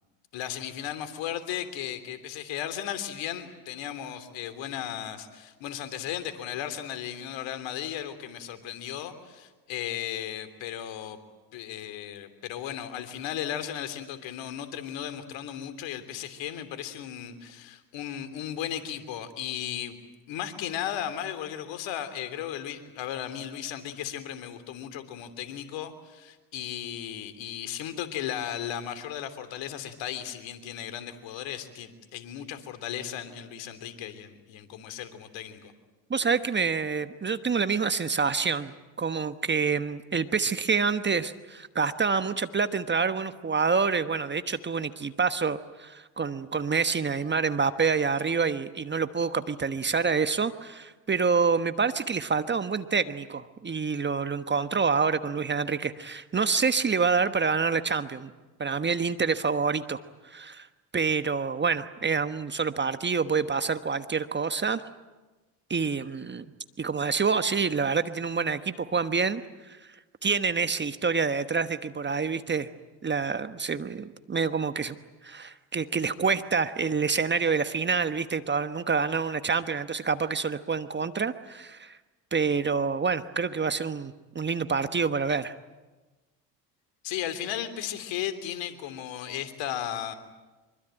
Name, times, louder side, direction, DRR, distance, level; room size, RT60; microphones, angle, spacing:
voice 1, 0.3-11.2 11.5-20.0 20.3-35.7 87.0-90.1, left 10 dB, 60° left, 10 dB, 3.2 m, -35 dB
voice 2, 36.1-58.3 58.6-60.7 60.9-64.8 65.7-66.4 66.8-69.4 69.7-69.9 70.2-72.7 73.0-74.9 75.2-82.0 82.3-85.5, right 5 dB, 20° right, 11 dB, 1.2 m, -27 dB
25.0 x 23.5 x 9.1 m, 1.2 s
hypercardioid pair, 75°, 49 cm